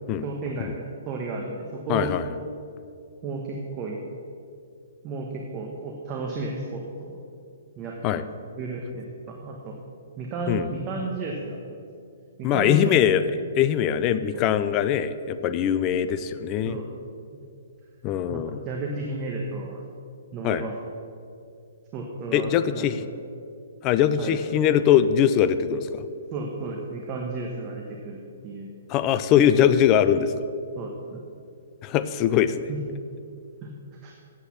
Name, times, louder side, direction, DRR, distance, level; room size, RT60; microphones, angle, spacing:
voice 1, 0.2-2.1 3.2-4.0 5.0-7.2 7.8-8.2 8.6-9.7 10.2-11.8 12.4-13.0 14.3-14.4 16.6-16.8 18.3-19.8 20.3-20.7 21.9-22.9 24.2-24.3 26.3-28.2 28.4-28.7 30.8-31.2 32.7-32.8 33.6-33.7 34.0-34.1, right 3 dB, 25° right, 0 dB, 1.1 m, -33 dB
voice 2, 1.9-2.3 8.0-8.2 10.5-10.7 12.4-16.8 18.0-18.6 20.4-20.6 22.3-23.0 23.8-26.1 28.9-30.3 31.8-32.7, left 9 dB, 25° left, 12 dB, 0.4 m, -22 dB
8.2 x 8.1 x 7.1 m, 2.4 s
hypercardioid pair, 155°, 0 cm